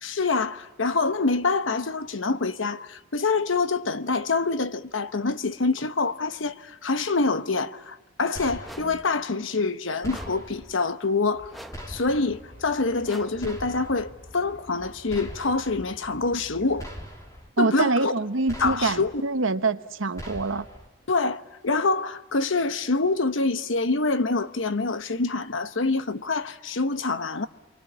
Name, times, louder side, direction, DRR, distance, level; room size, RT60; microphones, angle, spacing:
voice 1, 0.0-11.5 11.9-16.9 17.6-18.1 18.6-19.1 21.1-27.5, left 3 dB, 75° left, 1.0 m, -26 dB
sound 1, 8.4-9.0 10.0-10.7 11.7-12.4 13.4-14.1 15.1-15.8 16.8-17.5 18.5-19.2 20.2-20.9, equal, 15° left, 3.3 m, -40 dB
sound 2, 8.6-9.1 10.1-10.6 11.5-12.0 13.0-13.5, equal, ahead, 1.0 m, -44 dB
sound 3, 11.3-16.8, left 1 dB, 60° left, 6.5 m, -48 dB
voice 2, 17.6-20.7, right 3 dB, 85° right, 1.1 m, -25 dB
28.0 x 24.0 x 8.7 m
head